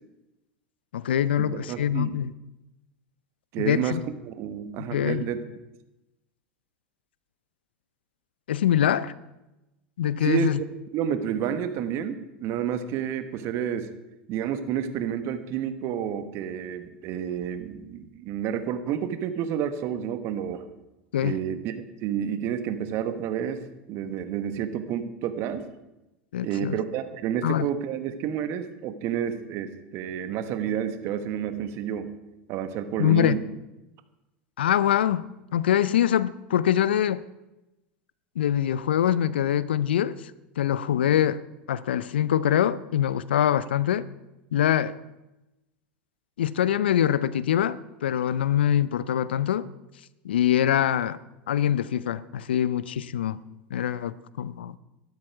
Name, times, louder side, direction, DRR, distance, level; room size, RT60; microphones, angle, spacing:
voice 1, 0.9-2.3 3.6-4.0 4.8-5.3 8.5-9.1 10.0-10.6 21.1-21.4 26.3-26.8 27.4-27.7 33.0-33.4 34.6-37.2 38.4-40.2 40.6-41.4 41.7-44.0 44.5-44.9 46.4-49.7 50.2-51.2 51.5-53.4 53.7-54.8, left 10 dB, 80° left, 18 dB, 0.5 m, -24 dB
voice 2, 1.5-2.2 3.5-4.0 4.2-5.4 10.2-10.6 10.9-13.9 14.3-20.6 21.2-21.8 22.0-23.6 23.9-25.6 26.4-32.1 32.5-33.4, right 9 dB, 50° right, 10 dB, 1.4 m, -30 dB
13.0 x 12.0 x 4.7 m, 0.97 s
hypercardioid pair, 85°, 6 cm